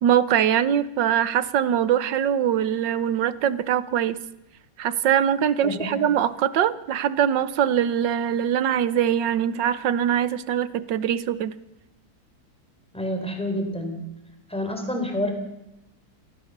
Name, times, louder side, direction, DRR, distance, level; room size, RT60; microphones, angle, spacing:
voice 1, 0.0-4.2 4.8-11.5, right 9 dB, 70° right, 16 dB, 1.5 m, -22 dB
voice 2, 5.6-6.0 12.9-14.0 14.5-15.3, left 1 dB, 5° left, 4 dB, 3.9 m, -28 dB
29.5 x 14.0 x 6.7 m, 0.90 s
omnidirectional pair, 2.1 m